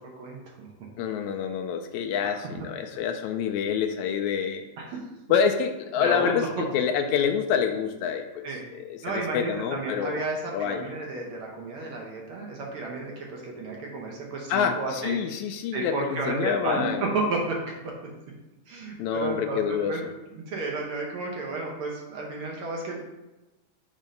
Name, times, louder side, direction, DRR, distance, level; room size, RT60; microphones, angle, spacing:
voice 1, 0.2-0.7 2.9-3.0 4.8-5.0 6.0-6.6 8.4-8.7 9.0-15.2 15.7-17.6 18.7-20.0 20.3-23.0, right 3 dB, 65° right, -1 dB, 1.4 m, -32 dB
voice 2, 1.0-4.6 5.3-8.5 8.7-10.2 10.5-10.8 14.5-17.0 19.0-20.0, left 7 dB, 80° left, 5 dB, 1.8 m, -27 dB
7.4 x 2.7 x 5.2 m, 1.0 s
omnidirectional pair, 3.4 m